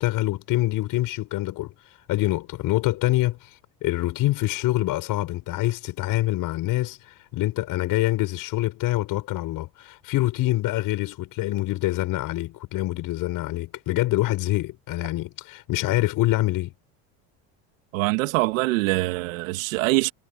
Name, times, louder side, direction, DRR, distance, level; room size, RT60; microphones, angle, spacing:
voice 1, 0.0-16.7, left 17 dB, 60° left, 7.5 m, -25 dB
voice 2, 17.9-20.1, right 22 dB, 90° right, 2.5 m, -23 dB
supercardioid pair, 120°, 38 cm